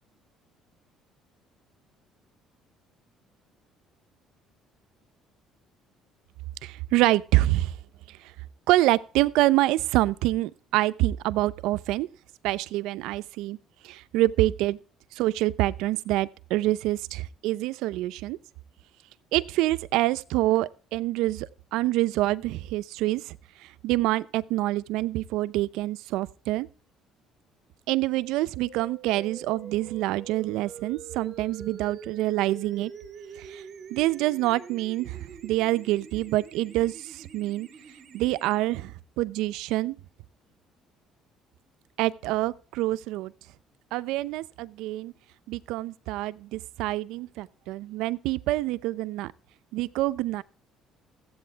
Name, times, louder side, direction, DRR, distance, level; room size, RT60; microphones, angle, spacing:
voice 1, 6.6-7.8 8.1-8.2 8.7-12.1 12.4-13.6 13.8-14.8 15.1-18.4 19.3-23.4 23.6-26.7 27.9-32.9 33.4-33.6 33.9-37.7 38.1-40.0 42.0-43.3 43.9-45.1 45.5-49.3 49.7-50.4, right 17 dB, 85° right, 0.6 m, -26 dB
sound 1, 28.6-38.6, right 6 dB, 40° right, 1.9 m, -45 dB
15.0 x 8.6 x 4.6 m
cardioid pair, 140°, 0 cm